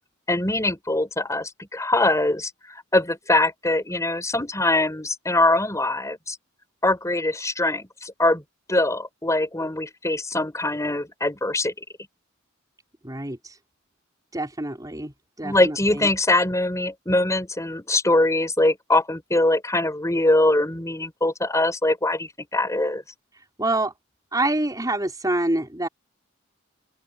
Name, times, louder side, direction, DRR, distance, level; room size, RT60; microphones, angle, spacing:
voice 1, 0.3-2.5 2.9-6.4 6.8-8.4 8.7-11.7 15.4-23.0, left 2 dB, 15° left, 4.6 m, -22 dB
voice 2, 13.0-13.4 14.3-16.1 23.6-23.9 24.3-25.9, right 2 dB, 20° right, 4.9 m, -26 dB
open air
head